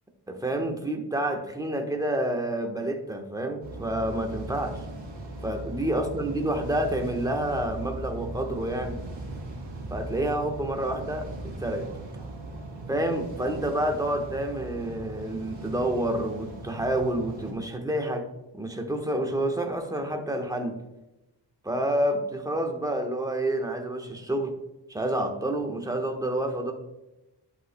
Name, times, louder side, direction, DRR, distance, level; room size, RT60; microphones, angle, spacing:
voice 1, 0.3-4.8 5.4-9.0 9.9-11.9 12.9-18.3 18.5-20.8 21.6-24.5 24.9-26.7, right 1 dB, 10° right, 3 dB, 1.2 m, -28 dB
sound 1, 3.6-17.5, right 2 dB, 85° right, 2.7 m, -39 dB
11.0 x 5.6 x 2.2 m, 0.97 s
cardioid pair, 50°, 44 cm